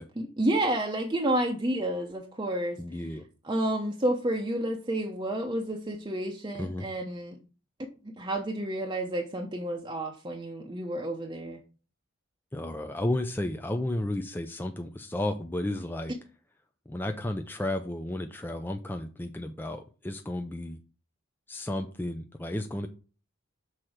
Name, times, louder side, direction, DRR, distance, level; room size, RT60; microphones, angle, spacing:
voice 1, 0.2-2.8 3.5-7.4 8.0-11.6, right 1 dB, 20° right, 0.7 m, -30 dB
voice 2, 2.8-3.2 6.5-6.9 12.5-16.1 16.9-20.8 21.5-22.9, left 1 dB, 10° left, 0.4 m, -33 dB
6.2 x 4.4 x 4.9 m
head